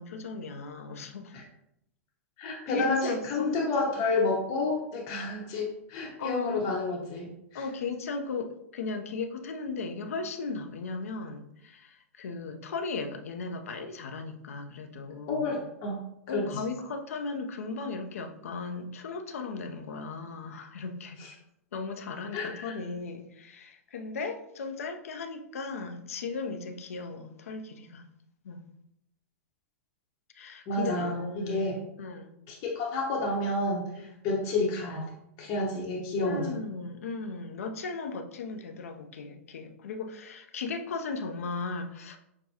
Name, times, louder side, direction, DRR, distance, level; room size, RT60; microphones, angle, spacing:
voice 1, 0.0-1.4 2.7-3.6 6.2-6.6 7.5-15.5 16.3-21.2 21.7-28.0 28.4-28.6 30.3-31.6 32.0-32.3 34.0-34.1 36.2-42.2, left 4 dB, 75° left, 5 dB, 0.6 m, -36 dB
voice 2, 2.4-7.6 15.3-16.6 21.2-21.3 22.3-22.7 30.7-31.8 32.5-35.1 35.4-36.5, left 2 dB, 45° left, -1 dB, 0.9 m, -30 dB
5.9 x 2.2 x 2.8 m, 0.79 s
hypercardioid pair, 110°, 8 cm